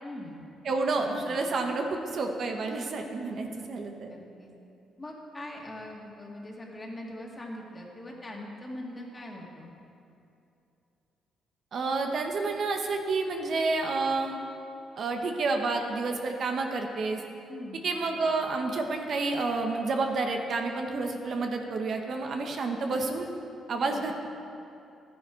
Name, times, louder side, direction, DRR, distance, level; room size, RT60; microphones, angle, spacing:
voice 1, 0.0-0.4 1.0-1.4 3.5-3.7 4.0-4.5 5.0-9.7 17.5-17.9 23.8-24.1, left 1 dB, 25° left, -1 dB, 2.1 m, -42 dB
voice 2, 0.6-4.1 11.7-14.4 15.0-17.2 17.8-23.3 23.7-24.1, right 3 dB, 55° right, 3 dB, 1.1 m, -29 dB
13.0 x 10.0 x 4.5 m, 2.8 s
cardioid pair, 90°, 0 cm